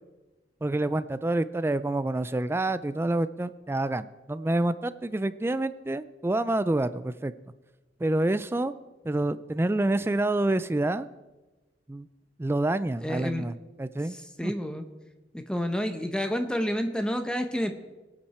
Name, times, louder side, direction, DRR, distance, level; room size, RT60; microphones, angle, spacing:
voice 1, 0.6-7.3 8.0-8.7 9.0-11.1 11.9-12.1 12.4-14.2 14.4-14.5, right 2 dB, 15° right, 14 dB, 0.3 m, -27 dB
voice 2, 13.0-13.5 14.1-14.9 15.3-17.7, equal, 5° left, 7 dB, 0.8 m, -29 dB
23.5 x 8.7 x 4.3 m, 1.1 s
head